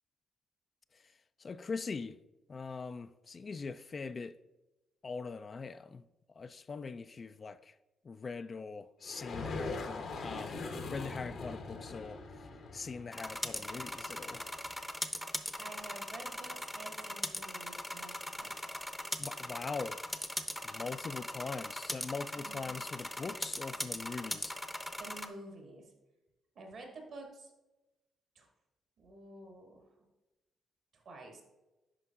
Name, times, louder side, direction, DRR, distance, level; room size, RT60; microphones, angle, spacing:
voice 1, 1.4-2.2 2.5-4.4 5.0-6.0 6.4-7.7 8.0-10.6 10.9-12.2 12.7-14.4 19.2-20.0 20.6-24.6, left 4 dB, 45° left, 0.3 m, -42 dB
sound 1, 9.0-14.7, left 3 dB, 65° left, 0.9 m, -42 dB
sound 2, 13.1-25.3, left 1 dB, 10° left, 0.7 m, -40 dB
voice 2, 15.6-18.6 22.3-22.7 25.0-25.9 26.6-27.5 28.4-28.5 29.0-29.8 30.9-31.4, right 2 dB, 65° right, 1.9 m, -50 dB
9.7 x 5.2 x 2.4 m
hypercardioid pair, 50°, 0 cm